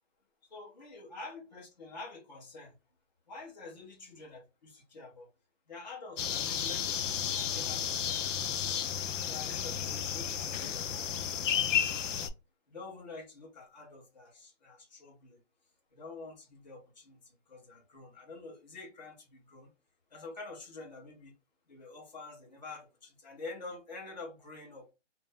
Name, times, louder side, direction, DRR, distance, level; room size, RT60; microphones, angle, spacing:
voice 1, 0.5-2.7 3.3-5.3 5.7-8.8 9.3-10.9 12.7-15.4 15.9-19.7 20.1-21.3 21.7-24.9, left 3 dB, 35° left, 0.8 m, -48 dB
sound 1, 6.2-12.3, left 8 dB, 85° left, 0.5 m, -32 dB
2.5 x 2.0 x 3.2 m
hypercardioid pair, 180°, 36 cm